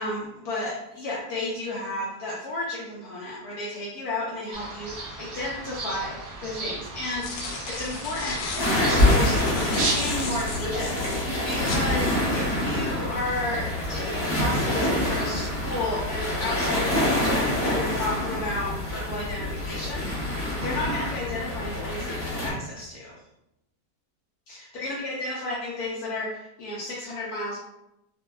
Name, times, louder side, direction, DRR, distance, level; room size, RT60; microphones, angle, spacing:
voice 1, 0.0-23.2 24.5-27.6, left 2 dB, 70° left, -5 dB, 1.1 m, -33 dB
sound 1, 4.5-10.6, right 2 dB, 55° right, 0.8 m, -34 dB
sound 2, 5.8-5.9 6.9-11.9, left 3 dB, 90° left, 1.3 m, -35 dB
sound 3, 8.6-22.5, left 1 dB, 45° left, 1.3 m, -26 dB
4.4 x 2.2 x 2.3 m, 0.87 s
omnidirectional pair, 1.8 m